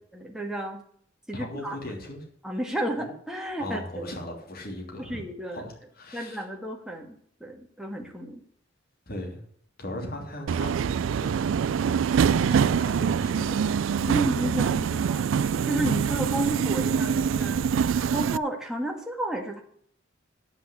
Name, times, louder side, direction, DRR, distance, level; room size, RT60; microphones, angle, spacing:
voice 1, 0.1-0.8 1.3-1.8 2.4-4.1 5.0-5.6 6.1-7.1 7.4-8.4 14.1-19.6, right 1 dB, 5° right, 1 dB, 1.7 m, -32 dB
voice 2, 1.3-2.3 3.0-3.1 3.6-5.2 5.5-6.4 9.1-9.4 9.8-12.0 12.3-13.9, left 1 dB, 50° left, 0 dB, 3.1 m, -38 dB
Subway metro underground, 10.5-18.4, right 7 dB, 70° right, 0.3 m, -25 dB
9.9 x 6.3 x 8.2 m, 0.62 s
head